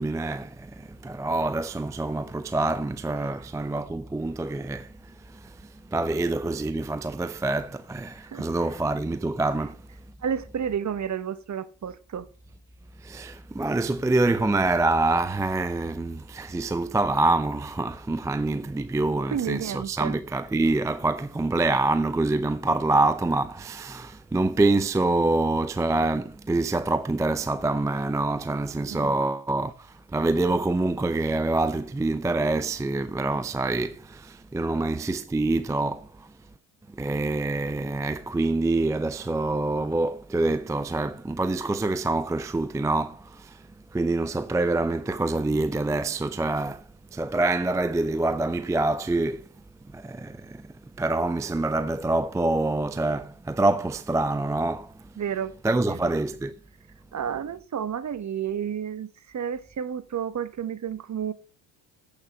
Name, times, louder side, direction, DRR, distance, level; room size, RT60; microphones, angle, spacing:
voice 1, 0.0-9.8 13.0-36.3 36.9-43.6 43.9-46.8 47.1-49.5 49.9-50.7 51.0-54.9 55.6-56.5, right 2 dB, 5° right, 0.5 m, -26 dB
voice 2, 10.2-12.3 19.2-20.2 28.9-29.2 55.2-55.5 55.9-56.1 57.1-61.3, right 8 dB, 35° right, 1.0 m, -31 dB
8.0 x 6.7 x 7.4 m
hypercardioid pair, 60°, 49 cm